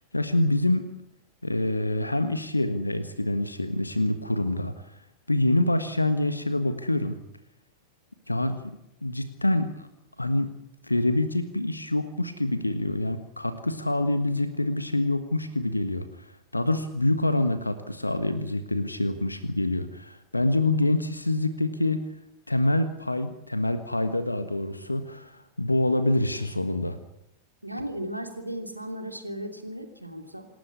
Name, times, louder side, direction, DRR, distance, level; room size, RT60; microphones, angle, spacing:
voice 1, 0.1-0.8 1.4-4.7 5.3-7.2 8.3-8.6 9.0-9.9 10.2-10.5 10.8-16.3 16.5-22.0 22.5-25.3 25.6-27.0, left 1 dB, 85° left, 11 dB, 1.5 m, -26 dB
voice 2, 27.6-30.5, right 1 dB, 90° right, 6 dB, 3.0 m, -36 dB
27.0 x 13.0 x 9.8 m, 0.80 s
figure-of-eight pair, 90°, 0 cm